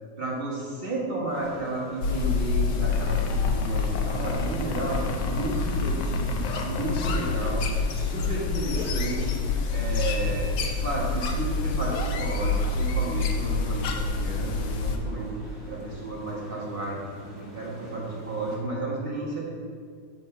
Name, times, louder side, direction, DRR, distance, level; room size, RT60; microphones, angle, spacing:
voice 1, 0.2-5.0 5.3-7.6 7.9-9.4 9.7-10.5 10.8-15.4 15.7-19.5, right 2 dB, 35° right, -6 dB, 1.7 m, -32 dB
sound 1, 1.3-18.6, right 1 dB, 35° left, 1.8 m, -45 dB
sound 2, 2.0-15.0, left 4 dB, 85° left, 1.3 m, -27 dB
7.1 x 4.3 x 5.6 m, 2.1 s
omnidirectional pair, 1.8 m